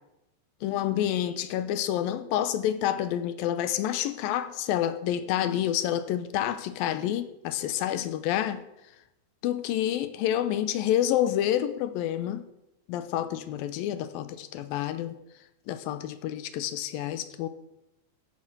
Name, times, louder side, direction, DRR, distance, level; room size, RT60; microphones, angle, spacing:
voice 1, 0.6-8.6 9.4-12.4 12.9-15.2 15.7-17.5, left 11 dB, 85° left, 2.5 m, -28 dB
14.5 x 7.3 x 6.0 m
omnidirectional pair, 4.2 m